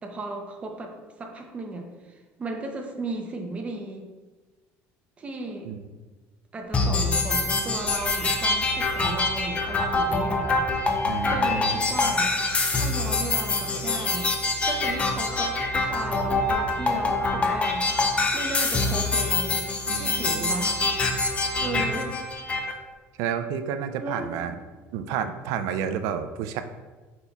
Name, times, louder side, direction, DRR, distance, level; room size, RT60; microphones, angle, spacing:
voice 1, 0.0-4.1 5.2-5.7 6.5-10.7 11.3-12.3 12.7-14.3 14.6-17.9 18.3-19.6 19.9-20.8 21.2-22.2 24.0-24.6, right 2 dB, 20° right, 2 dB, 0.6 m, -35 dB
sound 1, 6.7-22.7, left 3 dB, 20° left, 0.5 m, -25 dB
voice 2, 11.1-11.8 19.9-20.5 21.6-22.0 23.2-24.5 24.9-26.6, right 8 dB, 70° right, 9 dB, 0.4 m, -31 dB
5.1 x 4.3 x 2.3 m, 1.3 s
cardioid pair, 140°, 6 cm